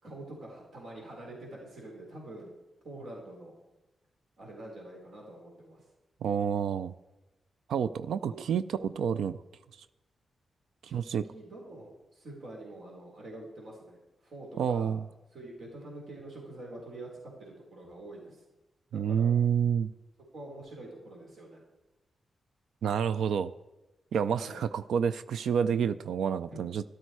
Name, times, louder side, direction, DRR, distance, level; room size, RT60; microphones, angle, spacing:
voice 1, 0.0-2.5 2.8-3.5 4.4-5.8 8.3-8.4 10.8-11.0 11.3-14.9 15.3-18.4 18.9-19.3 20.3-21.6 24.3-24.6 26.5-26.6, right 1 dB, 70° right, -2 dB, 4.6 m, -46 dB
voice 2, 6.2-6.9 7.7-9.4 10.9-11.2 14.6-15.0 18.9-19.9 22.8-23.5 24.1-26.8, right 7 dB, 90° right, 14 dB, 0.4 m, -28 dB
13.0 x 12.5 x 4.7 m, 1.0 s
cardioid pair, 85°, 0 cm